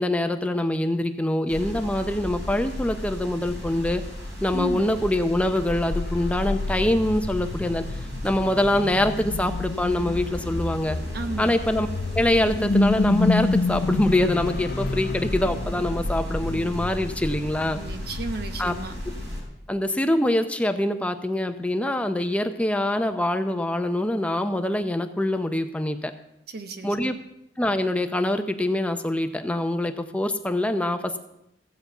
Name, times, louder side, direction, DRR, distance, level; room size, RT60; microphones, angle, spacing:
voice 1, 0.0-4.0 4.4-7.8 8.2-11.0 11.4-11.9 12.2-17.8 18.6-18.7 19.7-26.1 26.8-27.1 27.6-31.2, left 1 dB, 10° left, 7 dB, 0.7 m, -24 dB
sound 1, 1.5-19.4, left 1 dB, 85° right, 4.7 m, -35 dB
voice 2, 4.5-4.9 11.1-11.6 17.6-19.0 26.5-26.9, right 2 dB, 65° right, 7 dB, 1.1 m, -34 dB
sound 2, 5.9-19.1, left 3 dB, 55° left, 0.6 m, -29 dB
15.5 x 5.2 x 8.2 m, 0.82 s
head